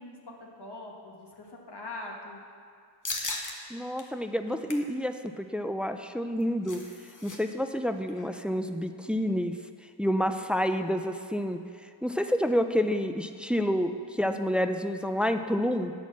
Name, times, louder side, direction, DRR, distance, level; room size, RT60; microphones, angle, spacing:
voice 1, 0.0-2.4, left 2 dB, 60° left, -1 dB, 1.5 m, -42 dB
sound 1, 3.0-3.5 4.0-4.1 4.5-4.9 6.2-7.4 7.6-7.8 8.1-8.4, left 3 dB, 45° left, 1.0 m, -37 dB
voice 2, 3.7-6.8 7.2-9.6 10.0-11.6 12.0-15.9, equal, 5° right, 8 dB, 0.3 m, -28 dB
10.5 x 4.3 x 7.2 m, 2.3 s
wide cardioid pair, 60°, 45 cm